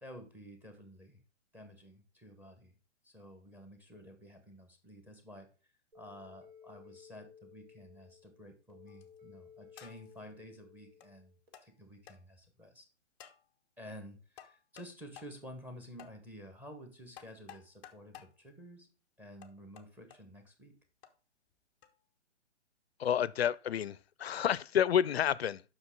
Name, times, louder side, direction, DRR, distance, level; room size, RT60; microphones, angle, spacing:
voice 1, 0.0-1.2 1.5-2.7 3.0-5.5 5.9-11.3 11.6-12.9 13.8-18.9 19.2-20.7, equal, 5° right, 1.2 m, -51 dB
sound 1, 5.9-11.5, left 7 dB, 60° right, 3.4 m, -57 dB
sound 2, 8.9-9.2 9.8-10.2 11.0-11.1 11.5-11.7 12.1-12.2 13.2-13.4 14.4-14.9 15.2-15.3 16.0-16.1 17.2-18.3 19.4-20.2 21.0-21.1 21.8-22.0, left 10 dB, 15° left, 0.5 m, -53 dB
voice 2, 23.0-25.6, left 9 dB, 60° left, 0.5 m, -30 dB
7.9 x 6.1 x 3.8 m
figure-of-eight pair, 130°, 35 cm